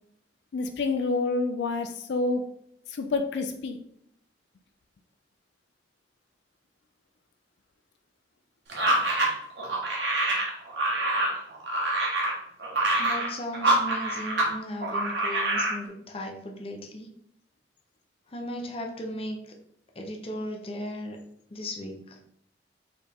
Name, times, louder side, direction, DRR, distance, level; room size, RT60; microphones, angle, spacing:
voice 1, 0.5-2.5 2.9-3.8, left 3 dB, 80° left, 7 dB, 0.4 m, -28 dB
sound 1, 8.7-14.5 14.8-15.8, right 2 dB, 85° right, 1.2 m, -26 dB
voice 2, 13.0-17.1 18.3-19.4 20.0-21.2 21.5-22.2, left 1 dB, 30° left, 2 dB, 0.7 m, -36 dB
4.5 x 3.3 x 3.5 m, 0.72 s
head